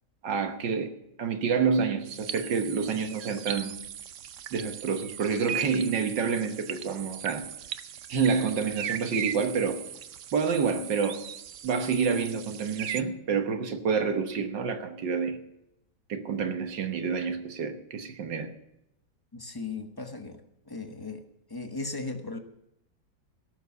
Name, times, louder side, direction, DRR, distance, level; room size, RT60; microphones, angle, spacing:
voice 1, 0.2-0.9 1.2-3.8 4.5-7.5 8.1-9.8 10.3-11.2 11.6-15.4 16.1-18.5, right 5 dB, 85° right, 6 dB, 1.9 m, -28 dB
sound 1, 2.1-13.0, right 10 dB, 60° right, 0.8 m, -38 dB
voice 2, 19.3-21.2 21.5-22.4, left 3 dB, 15° left, 6 dB, 0.8 m, -37 dB
17.5 x 7.2 x 7.0 m, 0.83 s
omnidirectional pair, 1.9 m